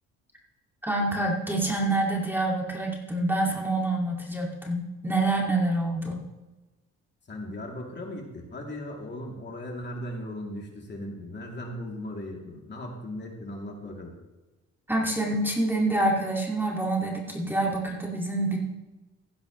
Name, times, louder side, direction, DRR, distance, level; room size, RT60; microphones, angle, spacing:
voice 1, 0.8-6.2 14.9-18.6, right 2 dB, 5° right, -2 dB, 2.2 m, -27 dB
voice 2, 7.3-14.1, left 1 dB, 35° left, -1 dB, 2.9 m, -37 dB
16.0 x 10.5 x 3.2 m, 1.1 s
cardioid pair, 90°, 30 cm